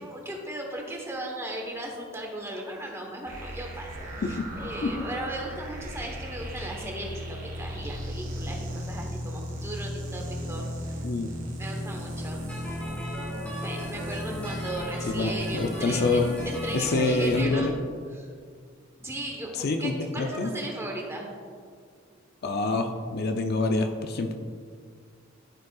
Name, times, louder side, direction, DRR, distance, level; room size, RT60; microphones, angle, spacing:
voice 1, 0.0-10.7 11.6-12.8 13.1-17.7 18.1-18.3 19.0-21.3, right 1 dB, 15° right, 0 dB, 1.0 m, -37 dB
sound 1, 3.3-17.4, equal, 45° right, 1.9 m, -36 dB
sound 2, 12.5-17.6, left 1 dB, 5° left, 1.9 m, -38 dB
voice 2, 15.1-16.3 16.7-17.7 19.6-20.5 22.4-24.3, left 3 dB, 50° left, 5 dB, 0.5 m, -26 dB
13.0 x 5.2 x 2.4 m, 2.1 s
head